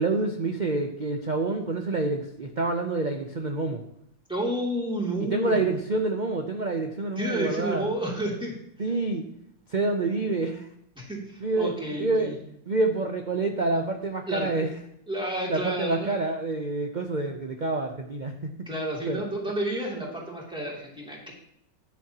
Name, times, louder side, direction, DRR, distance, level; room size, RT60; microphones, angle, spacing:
voice 1, 0.0-3.8 5.3-7.9 8.8-9.2 9.7-10.7 11.4-11.7 12.0-12.4 12.7-14.7 15.5-18.5 19.1-19.2, right 3 dB, 85° right, 4 dB, 0.4 m, -27 dB
voice 2, 4.3-5.6 7.2-8.5 11.0-12.3 14.3-14.7 15.1-16.1 18.7-21.3, right 1 dB, 5° right, -3 dB, 2.7 m, -30 dB
14.0 x 9.4 x 2.9 m, 0.73 s
omnidirectional pair, 2.0 m